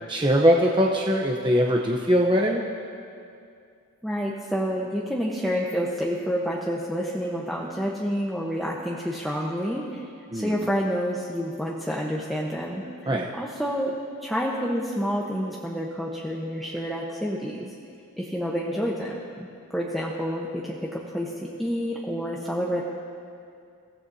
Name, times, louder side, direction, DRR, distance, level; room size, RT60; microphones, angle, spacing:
voice 1, 0.1-2.6 10.3-10.7 13.0-13.3, equal, 20° right, -1 dB, 0.9 m, -21 dB
voice 2, 4.0-10.0 10.3-12.8 13.4-14.0 14.2-17.7 18.2-19.1 19.4-19.5 19.7-22.8, equal, ahead, -5 dB, 1.1 m, -28 dB
30.0 x 16.0 x 2.8 m, 2.4 s
head